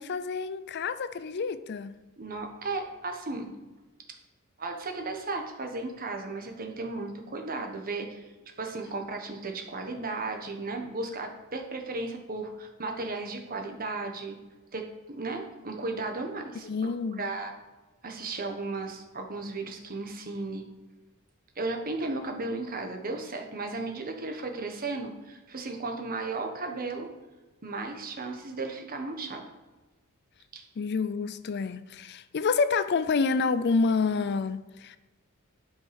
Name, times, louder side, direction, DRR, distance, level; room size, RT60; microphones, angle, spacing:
voice 1, 0.0-2.0 16.6-17.2 30.8-35.0, left 4 dB, 50° left, 13 dB, 0.4 m, -28 dB
voice 2, 2.2-3.5 4.6-8.2 8.6-14.4 14.7-16.7 17.2-17.5 18.0-20.7 21.6-27.1 27.6-29.4 30.5-30.6, right 3 dB, 40° right, 3 dB, 1.3 m, -35 dB
12.5 x 5.4 x 5.2 m, 1.2 s
head